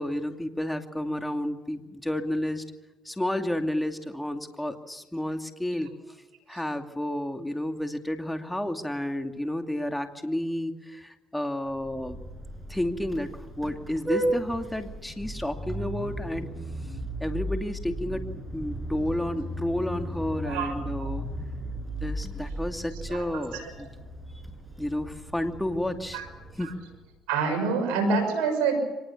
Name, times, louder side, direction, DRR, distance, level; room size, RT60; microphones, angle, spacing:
voice 1, 0.0-2.6 3.0-5.9 6.5-12.2 12.7-16.5 17.2-18.2 18.5-21.2 22.0-23.9 24.8-26.2 26.6-26.7, left 1 dB, 5° left, 5 dB, 2.5 m, -31 dB
Vehicle horn car horn honking, 11.7-27.1, right 1 dB, 10° right, 7.4 m, -35 dB
voice 2, 23.1-23.7 26.1-26.2 27.3-28.8, right 4 dB, 85° right, 3 dB, 6.2 m, -26 dB
24.5 x 19.5 x 7.2 m, 1.1 s
supercardioid pair, 85°, 0 cm